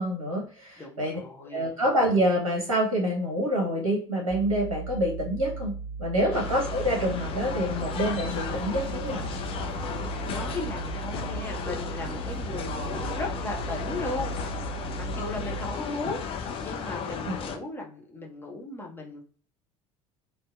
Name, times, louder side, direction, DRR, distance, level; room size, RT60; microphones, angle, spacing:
voice 1, 0.0-1.2 1.5-5.7 6.0-9.3 17.2-17.4, equal, 75° right, -1 dB, 0.7 m, -27 dB
voice 2, 0.8-1.7 6.2-6.5 10.3-14.4 14.7-19.2, left 2 dB, 10° left, -1 dB, 0.8 m, -36 dB
sound 1, 4.3-15.7, right 5 dB, 90° left, 0.6 m, -37 dB
sound 2, 6.3-17.6, left 6 dB, 30° left, 0.5 m, -35 dB
sound 3, 8.3-13.1, right 3 dB, 25° right, 1.0 m, -45 dB
2.6 x 2.1 x 2.3 m, 0.43 s
figure-of-eight pair, 65°, 18 cm